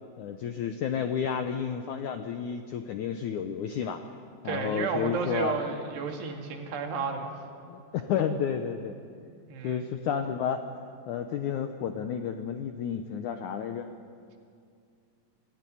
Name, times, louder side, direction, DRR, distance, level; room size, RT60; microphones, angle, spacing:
voice 1, 0.2-4.0 4.4-5.6 7.7-9.0 9.6-10.6 11.1-13.9, left 8 dB, 80° left, 7 dB, 1.7 m, -31 dB
voice 2, 4.5-7.3 9.5-9.9, right 5 dB, 90° right, 2 dB, 4.4 m, -32 dB
26.0 x 15.5 x 10.0 m, 2.3 s
omnidirectional pair, 4.7 m